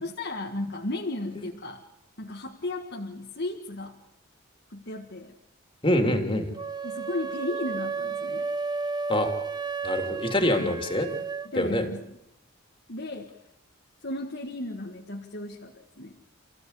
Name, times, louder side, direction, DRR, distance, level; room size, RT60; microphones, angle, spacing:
voice 1, 0.0-1.8 2.2-4.0 4.7-5.3 6.8-8.5 10.6-10.8 11.4-12.2 12.9-13.3 14.0-16.1, left 2 dB, 50° left, 1 dB, 1.7 m, -35 dB
voice 2, 5.8-6.5 9.1-9.3 9.8-11.1 11.6-11.9, left 1 dB, 25° left, 4 dB, 3.1 m, -25 dB
sound 1, 6.5-11.5, right 4 dB, 20° right, 0.9 m, -32 dB
29.5 x 15.5 x 8.3 m, 0.87 s
head